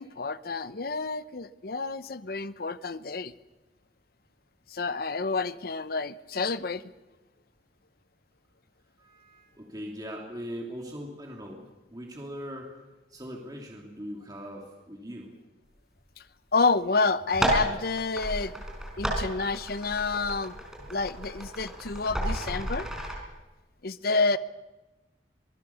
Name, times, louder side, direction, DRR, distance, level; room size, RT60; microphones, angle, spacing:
voice 1, 0.0-3.3 4.7-6.8 16.5-18.5 19.0-20.5 20.9-22.9 23.8-24.4, left 4 dB, 60° left, 14 dB, 0.8 m, -29 dB
voice 2, 9.0-11.6 11.9-12.7 13.1-15.3, equal, 25° right, 0 dB, 2.7 m, -40 dB
sound 1, 17.2-23.1, right 1 dB, 5° right, 4.9 m, -32 dB
24.5 x 19.0 x 7.0 m, 1.1 s
head